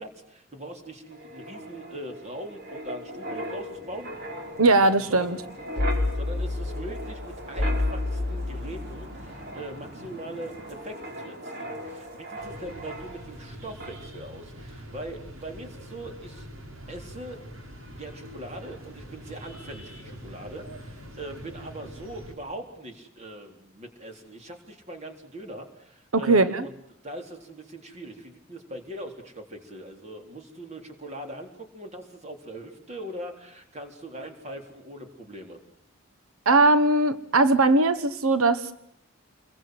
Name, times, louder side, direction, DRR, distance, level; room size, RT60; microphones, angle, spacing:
voice 1, 0.0-4.1 5.1-5.3 6.1-16.5 16.9-17.4 18.0-26.7 27.0-35.6, right 1 dB, 30° right, 4 dB, 3.9 m, -41 dB
Wind, 1.1-13.5 13.8-14.0, left 1 dB, 50° right, 4.5 m, -33 dB
voice 2, 4.6-5.4 26.1-26.6 36.4-38.6, right 2 dB, 90° right, 12 dB, 1.3 m, -20 dB
sound 1, 12.4-22.3, equal, 70° right, 4.6 m, -44 dB
28.5 x 22.0 x 7.9 m, 0.73 s
head